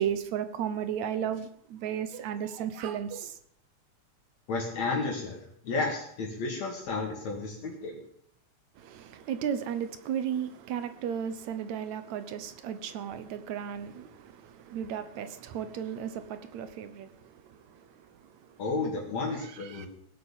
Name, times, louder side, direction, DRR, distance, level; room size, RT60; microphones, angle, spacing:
voice 1, 0.0-3.3 8.8-17.2 17.5-17.8 19.5-19.9, right 9 dB, 75° right, 11 dB, 2.3 m, -34 dB
voice 2, 4.5-8.0 18.6-19.9, left 3 dB, 70° left, -1 dB, 3.5 m, -32 dB
17.5 x 8.1 x 7.4 m, 0.70 s
omnidirectional pair, 3.3 m